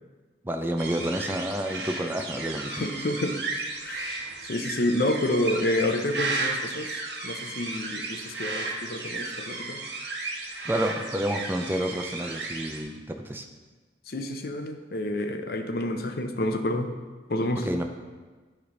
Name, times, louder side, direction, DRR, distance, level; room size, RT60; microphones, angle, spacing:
voice 1, 0.4-3.0 10.7-13.5 17.6-17.8, right 1 dB, 10° right, 5 dB, 0.4 m, -29 dB
sound 1, 0.8-12.8, right 3 dB, 70° right, 1.1 m, -34 dB
voice 2, 2.7-3.4 3.8-9.8 14.1-16.9 17.3-17.7, left 1 dB, 55° left, 6 dB, 0.6 m, -29 dB
9.9 x 3.3 x 5.1 m, 1.3 s
head